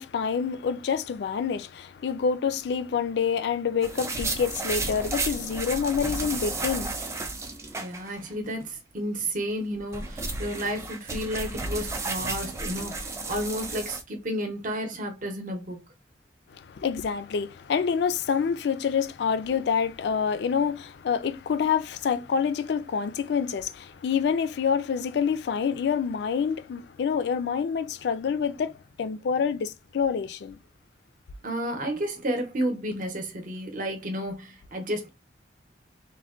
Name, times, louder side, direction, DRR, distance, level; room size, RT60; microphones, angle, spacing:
voice 1, 0.0-6.9 16.5-30.6, left 6 dB, 65° left, 0.3 m, -27 dB
sound 1, 3.8-8.3 8.6-8.7 9.6-14.0, right 3 dB, 15° right, 0.3 m, -33 dB
voice 2, 7.7-15.8 31.4-35.1, equal, 45° right, 0.7 m, -32 dB
3.3 x 2.1 x 2.3 m
head